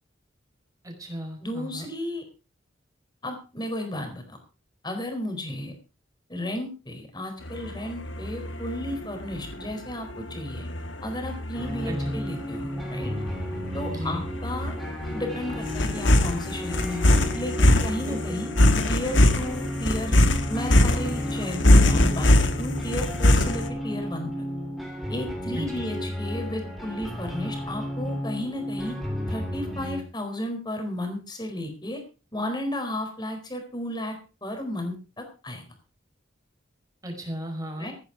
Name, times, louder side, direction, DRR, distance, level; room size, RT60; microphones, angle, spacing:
voice 1, 0.8-1.9 11.8-12.1 13.9-14.2 18.0-18.4 25.5-25.9 37.0-37.9, equal, 20° right, 2 dB, 4.9 m, -36 dB
voice 2, 1.4-2.2 3.2-4.4 4.8-5.7 6.3-10.7 11.0-13.1 13.7-14.7 15.1-18.5 18.9-20.2 20.5-24.3 25.1-29.0 29.3-32.0 32.3-34.2 34.4-35.6 37.8-37.9, left 1 dB, 20° left, 4 dB, 4.3 m, -33 dB
sound 1, 7.5-23.7, left 1 dB, 80° left, 1.8 m, -23 dB
sound 2, 11.5-30.0, equal, ahead, 3.6 m, -33 dB
15.5 x 10.5 x 4.9 m, 0.34 s
head